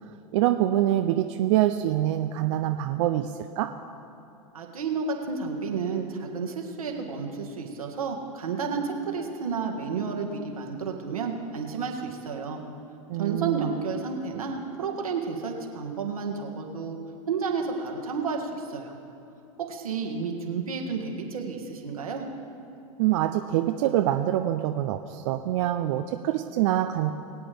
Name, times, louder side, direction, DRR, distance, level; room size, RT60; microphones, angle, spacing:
voice 1, 0.3-3.7 13.1-13.7 23.0-27.1, right 13 dB, 60° right, 6 dB, 0.6 m, -25 dB
voice 2, 4.5-12.6 13.2-17.0 17.3-18.9 19.6-22.3, right 5 dB, 85° right, 1 dB, 1.7 m, -31 dB
21.5 x 8.8 x 3.4 m, 2.8 s
hypercardioid pair, 100°, 18 cm